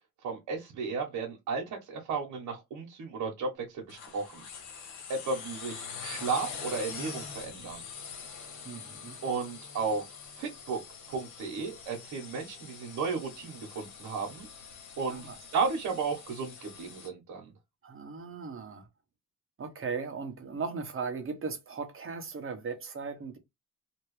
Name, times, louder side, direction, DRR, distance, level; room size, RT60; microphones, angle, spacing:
voice 1, 0.2-4.4 5.1-7.8 9.2-10.1 10.4-10.8 11.1-14.5 15.0-17.5, right 4 dB, 80° right, 1.4 m, -34 dB
sound 1, 3.9-17.1, left 6 dB, 80° left, 1.2 m, -44 dB
voice 2, 8.6-9.2 15.1-15.4 17.8-18.9 19.6-23.4, right 5 dB, 45° right, 1.2 m, -37 dB
2.9 x 2.9 x 3.2 m
cardioid pair, 90°, 30 cm